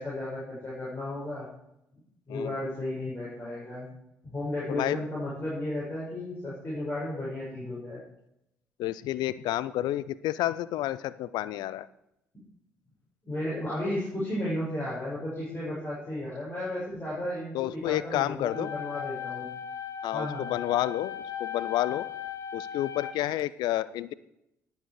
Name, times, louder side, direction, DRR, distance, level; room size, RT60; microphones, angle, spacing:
voice 1, 0.0-1.5 2.3-3.9 4.3-8.0 13.2-19.5 20.1-20.5, left 1 dB, 25° left, -7 dB, 5.6 m, -34 dB
voice 2, 4.7-5.0 8.8-11.9 17.5-18.7 20.0-22.1 22.5-24.1, left 14 dB, 60° left, 18 dB, 0.5 m, -30 dB
sound 1, 18.4-23.4, left 9 dB, 40° left, 1.1 m, -37 dB
19.0 x 6.6 x 4.8 m, 0.81 s
figure-of-eight pair, 45°, 8 cm